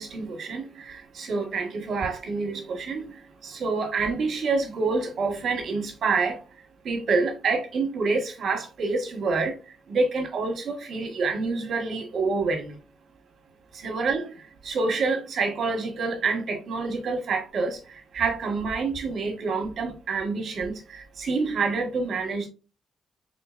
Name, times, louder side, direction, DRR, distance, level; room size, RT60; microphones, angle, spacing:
voice 1, 0.0-12.8 13.7-22.5, right 4 dB, 65° right, 1.4 m, -27 dB
4.5 x 3.8 x 2.4 m
cardioid pair, 85°, 0 cm